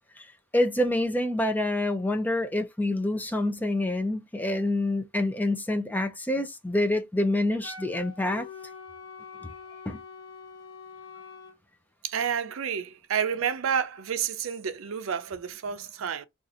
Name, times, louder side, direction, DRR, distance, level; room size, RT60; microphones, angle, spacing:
voice 1, 0.5-8.5 9.9-10.0, left 1 dB, 10° left, 0.5 m, -27 dB
Wind instrument woodwind instrument, 7.6-11.6, left 5 dB, 85° left, 1.0 m, -44 dB
voice 2, 12.0-16.3, right 7 dB, 80° right, 0.5 m, -30 dB
2.6 x 2.4 x 4.1 m
head